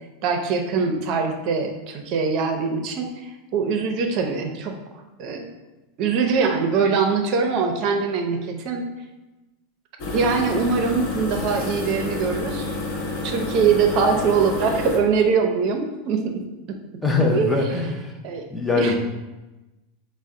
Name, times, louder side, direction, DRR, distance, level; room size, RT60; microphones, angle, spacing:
voice 1, 0.2-4.8 5.2-5.5 6.0-8.9 10.1-12.7 13.2-16.4 17.3-17.8 18.2-18.4 18.8-19.0, right 5 dB, 45° right, 4 dB, 0.6 m, -22 dB
sound 1, 10.0-15.0, left 2 dB, 50° left, 0.9 m, -29 dB
voice 2, 17.0-18.1 18.5-19.0, left 3 dB, 10° left, 2 dB, 0.5 m, -22 dB
5.4 x 2.1 x 3.7 m, 1.1 s
supercardioid pair, 145°, 0 cm